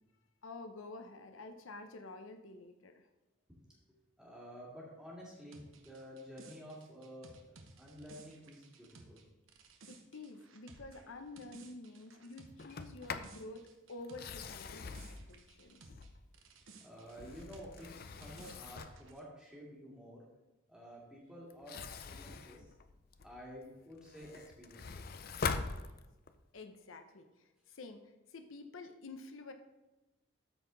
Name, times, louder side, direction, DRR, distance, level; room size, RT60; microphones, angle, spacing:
voice 1, 0.4-3.1 9.9-15.0 15.3-15.9 26.5-29.5, left 2 dB, 85° left, 7 dB, 0.7 m, -49 dB
voice 2, 4.2-9.2 16.8-20.2 20.7-22.7 23.2-25.2, equal, 5° right, -5 dB, 2.3 m, -51 dB
sound 1, 5.5-16.1 16.3-19.2, right 3 dB, 80° right, 1.0 m, -58 dB
Sliding door, 12.6-13.4 14.0-16.4 16.9-19.1 21.5-23.4 23.9-26.4, left 5 dB, 45° left, 0.4 m, -43 dB
13.0 x 4.6 x 3.9 m, 1.1 s
head